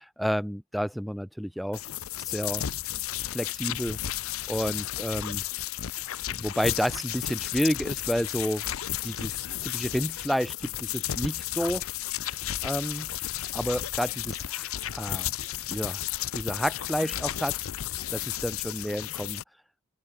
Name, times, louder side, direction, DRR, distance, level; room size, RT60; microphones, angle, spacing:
voice 1, 0.2-1.8 2.2-2.6 3.3-4.0 4.5-5.4 6.3-8.6 9.0-9.3 9.6-11.8 12.6-13.1 13.5-15.3 15.7-16.0 16.3-17.6 18.1-19.4, equal, ahead, 0.3 m, -30 dB
sound 1, 1.7-19.4, left 12 dB, 75° left, 0.6 m, -33 dB
open air
head